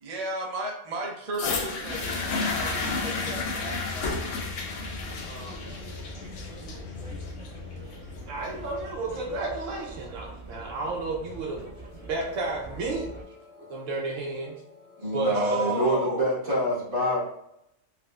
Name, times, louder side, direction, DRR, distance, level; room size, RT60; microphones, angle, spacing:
voice 1, 0.0-4.2 5.2-5.8 15.3-16.2, right 2 dB, 40° right, -1 dB, 0.6 m, -35 dB
sound 1, 1.3-9.3 10.1-10.2, left 4 dB, 80° left, 0.9 m, -32 dB
sound 2, 1.9-13.2, right 2 dB, 25° right, 1.2 m, -43 dB
sound 3, 2.0-9.7 11.5-15.9, left 8 dB, 50° left, 0.8 m, -45 dB
voice 2, 8.3-11.7 12.1-13.1 13.7-14.6 15.1-15.8 16.1-16.2, right 3 dB, 80° right, -2 dB, 1.0 m, -31 dB
voice 3, 15.0-17.2, equal, 65° right, -7 dB, 1.6 m, -26 dB
4.6 x 2.0 x 2.3 m, 0.80 s
omnidirectional pair, 1.3 m